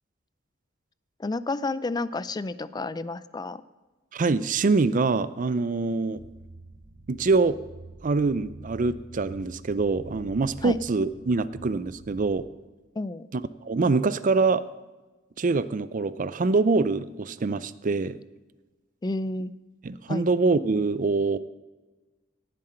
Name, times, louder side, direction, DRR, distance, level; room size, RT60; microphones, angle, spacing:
voice 1, 1.2-3.6 10.6-10.8 13.0-13.3 19.0-19.5 20.1-20.3, left 2 dB, 20° left, 16 dB, 0.4 m, -30 dB
voice 2, 4.1-6.2 7.1-7.6 8.0-12.5 13.6-14.6 15.4-18.2 19.8-21.4, right 3 dB, 45° right, 16 dB, 0.5 m, -24 dB
sound 1, 6.1-12.3, right 2 dB, 75° right, 2.1 m, -46 dB
18.0 x 7.7 x 4.4 m, 1.2 s
head